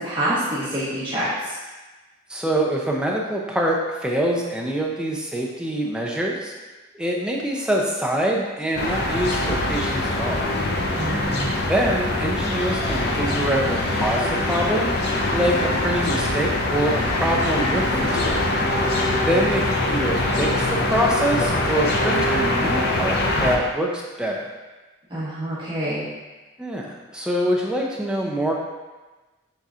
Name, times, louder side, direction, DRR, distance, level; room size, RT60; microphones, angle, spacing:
voice 1, 0.0-1.5 10.9-11.6 25.1-26.1, right 1 dB, 25° right, -11 dB, 1.1 m, -26 dB
voice 2, 2.3-6.5 6.9-10.4 11.7-14.9 15.3-18.5 19.3-24.5 26.6-28.5, right 1 dB, 5° right, -2 dB, 0.4 m, -25 dB
sound 1, 8.8-23.6, left 1 dB, 50° left, 0.5 m, -23 dB
5.6 x 3.8 x 2.4 m, 1.2 s
head